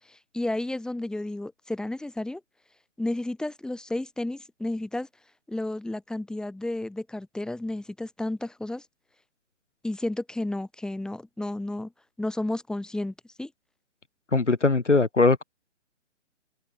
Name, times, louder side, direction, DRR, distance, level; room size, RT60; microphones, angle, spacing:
voice 1, 0.0-2.4 3.0-5.1 5.5-8.8 9.8-11.9 12.2-13.5, left 1 dB, ahead, 7.1 m, -32 dB
voice 2, 14.3-15.4, left 3 dB, 75° left, 2.8 m, -20 dB
open air
figure-of-eight pair, 130°, 36 cm